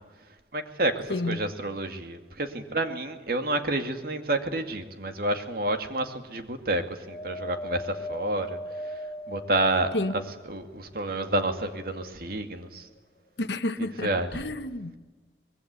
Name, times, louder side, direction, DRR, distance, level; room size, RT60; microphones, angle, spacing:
voice 1, 0.5-10.2 10.5-12.9 14.0-14.4, right 2 dB, 55° right, 2.3 m, -29 dB
voice 2, 1.1-1.4 9.9-10.1 13.4-15.0, left 2 dB, 75° left, 1.2 m, -30 dB
Wind, 7.1-10.6 11.2-12.2 13.0-13.1, left 1 dB, 30° left, 0.9 m, -39 dB
24.5 x 21.5 x 8.4 m
head